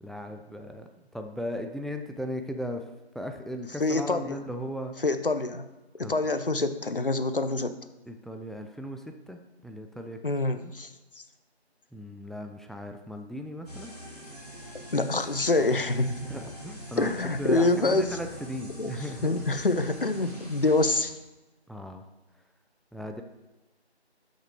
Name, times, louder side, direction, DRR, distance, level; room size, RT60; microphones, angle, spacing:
voice 1, 0.0-0.9 1.1-2.8 3.1-4.9 6.0-6.1 8.1-10.2 10.6-10.7 11.9-13.9 16.2-17.1 17.4-19.3 21.7-22.0 22.9-23.2, equal, ahead, 5 dB, 0.3 m, -37 dB
voice 2, 3.8-4.4 5.0-5.7 6.0-7.7 10.2-10.9 11.2-11.3 14.9-16.3 17.0-18.2 18.8-21.1, left 2 dB, 55° left, 11 dB, 0.5 m, -26 dB
sound 1, 13.7-21.0, equal, 35° left, 1.6 m, -43 dB
8.2 x 6.4 x 3.1 m, 1.1 s
figure-of-eight pair, 170°, 33 cm